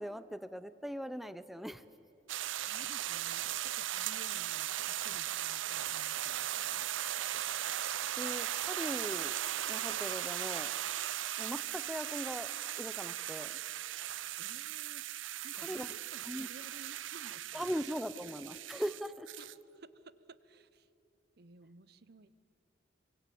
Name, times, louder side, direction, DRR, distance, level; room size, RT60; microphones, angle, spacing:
voice 1, 0.0-1.8 8.2-9.4 9.7-10.7 11.4-13.5 15.6-15.9 16.3-16.5 17.5-19.3, equal, ahead, 13 dB, 0.6 m, -40 dB
sound 1, 2.3-19.5, right 12 dB, 80° right, 0.6 m, -38 dB
voice 2, 2.6-6.9 14.4-15.0 15.4-17.8 19.4-20.9 21.4-22.3, right 3 dB, 55° right, 16 dB, 0.8 m, -56 dB
25.5 x 25.0 x 8.6 m, 2.7 s
head